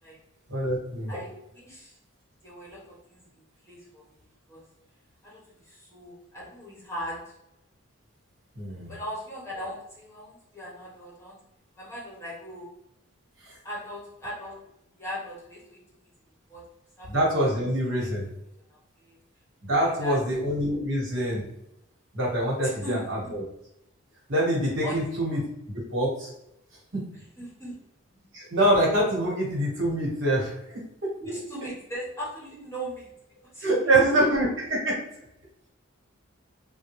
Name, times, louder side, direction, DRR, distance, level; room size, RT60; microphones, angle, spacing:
voice 1, 0.5-1.1 8.5-8.9 13.4-13.5 17.1-18.2 19.6-21.4 22.1-23.4 24.3-25.4 25.9-26.3 26.9-27.0 28.3-30.5 31.0-31.1 33.6-34.9, right 1 dB, 60° right, -4 dB, 1.4 m, -25 dB
voice 2, 1.1-1.9 2.4-3.2 3.6-4.0 4.5-4.6 5.2-7.3 8.9-11.4 11.8-12.7 13.6-14.6 15.0-15.8 16.5-16.6 17.0-17.1 18.0-18.1 19.0-19.2 19.8-20.2 22.6-23.4 24.8-25.0 27.4-27.8 31.2-33.1 33.5-33.7, equal, 15° left, -5 dB, 1.0 m, -39 dB
3.8 x 2.3 x 3.1 m, 0.81 s
head